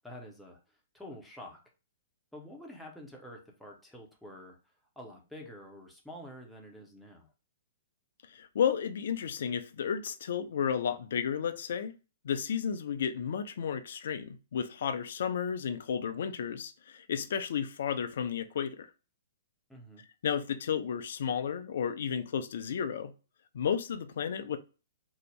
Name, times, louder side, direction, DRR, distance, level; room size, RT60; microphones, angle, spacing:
voice 1, 0.0-1.6 2.3-7.3 19.7-20.0, left 1 dB, ahead, 0.6 m, -48 dB
voice 2, 8.3-11.9 12.2-18.9 20.2-23.1 23.5-24.6, left 7 dB, 55° left, 0.3 m, -32 dB
2.6 x 2.1 x 3.1 m
figure-of-eight pair, 115°, 0 cm